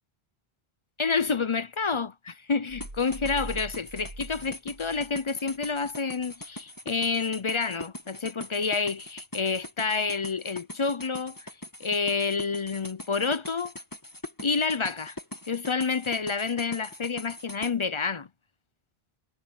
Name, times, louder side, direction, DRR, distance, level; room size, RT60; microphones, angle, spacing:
voice 1, 1.0-11.5 11.8-13.7 14.4-15.2 15.5-18.3, left 4 dB, 40° left, 0.5 m, -29 dB
sound 1, 2.7-5.3 5.6-5.7, right 1 dB, 50° right, 4.4 m, -42 dB
sound 2, 2.8-17.7, left 1 dB, 20° left, 1.8 m, -42 dB
omnidirectional pair, 1.0 m